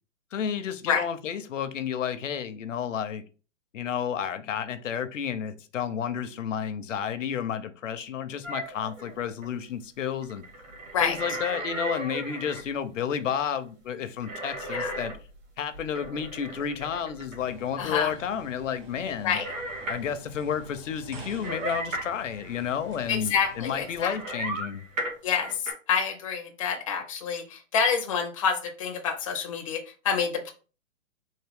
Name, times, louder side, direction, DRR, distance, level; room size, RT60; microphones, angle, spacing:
voice 1, 0.3-3.2 3.7-10.4 11.0-15.1 15.6-19.4 19.9-24.8, left 8 dB, 75° left, 0.7 m, -31 dB
sound 1, 8.4-9.5 10.2-12.6 14.2-15.4 15.7-17.4 19.3-20.1 21.4-23.3 23.8-25.7, right 1 dB, 85° right, 1.7 m, -36 dB
sound 2, 17.4-24.4, right 1 dB, 25° right, 0.8 m, -47 dB
voice 2, 17.8-18.1 19.2-19.5 23.1-24.2 25.2-30.5, left 6 dB, 25° left, 0.5 m, -27 dB
3.6 x 2.7 x 3.4 m
hypercardioid pair, 165°, 38 cm